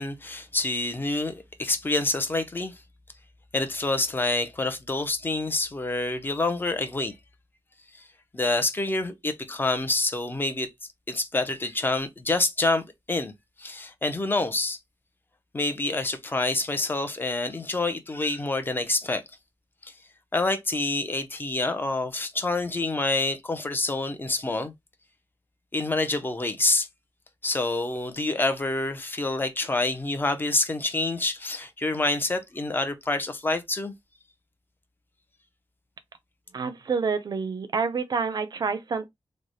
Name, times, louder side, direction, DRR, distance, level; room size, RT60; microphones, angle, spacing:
voice 1, 0.0-2.8 3.5-7.2 7.9-8.0 8.3-10.7 11.1-13.3 13.6-14.8 15.5-19.2 19.8-19.9 20.3-24.7 25.7-26.9 27.4-33.9, left 2 dB, 20° left, 0.6 m, -27 dB
voice 2, 36.5-39.1, right 5 dB, 45° right, 0.5 m, -28 dB
3.2 x 2.1 x 3.9 m
wide cardioid pair, 140°, 9 cm